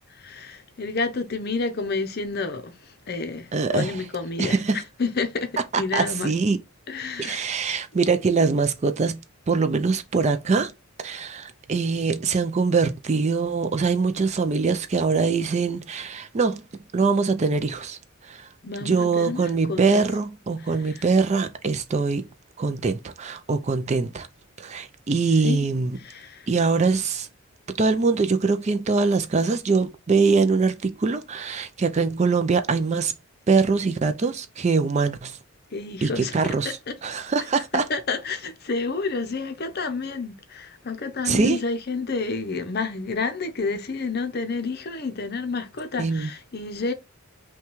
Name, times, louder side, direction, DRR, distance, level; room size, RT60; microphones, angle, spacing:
voice 1, 0.1-6.3 6.9-7.5 18.6-20.0 20.8-21.0 25.4-25.6 26.0-26.5 35.7-37.0 37.9-46.9, left 4 dB, 45° left, 0.6 m, -30 dB
voice 2, 3.5-4.0 4.4-4.8 5.7-6.6 7.2-9.2 9.5-10.7 11.0-16.6 16.9-18.5 18.8-22.3 22.6-24.3 24.6-26.0 26.5-27.3 27.8-33.1 33.5-35.4 36.0-37.9 41.2-41.6 46.0-46.3, right 4 dB, 30° right, 0.4 m, -23 dB
5.7 x 2.3 x 3.0 m
head